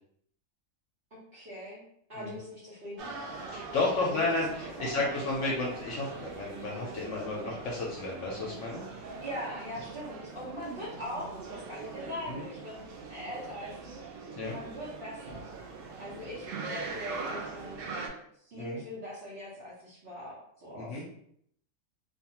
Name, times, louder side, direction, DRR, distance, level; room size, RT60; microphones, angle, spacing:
voice 1, 1.1-1.8 2.1-5.4 9.2-14.0 14.5-15.5 16.0-17.8 18.4-21.0, left 1 dB, 50° right, -9 dB, 1.0 m, -42 dB
sound 1, 3.0-18.1, right 4 dB, 65° right, 0.5 m, -42 dB
voice 2, 3.5-8.8 12.3-12.4 14.4-14.5 18.6-18.8 20.7-21.0, left 3 dB, 70° left, -3 dB, 0.9 m, -32 dB
2.6 x 2.3 x 2.8 m, 0.70 s
omnidirectional pair, 1.4 m